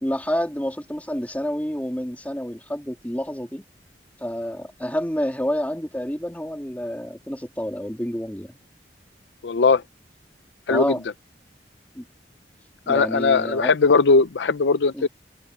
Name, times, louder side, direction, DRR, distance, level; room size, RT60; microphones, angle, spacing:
voice 1, 0.0-3.6 4.2-8.6 10.7-11.0 11.9-12.1 12.9-13.7 14.9-15.0, equal, 10° left, 2.9 m, -28 dB
voice 2, 9.4-9.8 10.7-10.9 12.9-15.1, left 4 dB, 85° left, 0.6 m, -19 dB
head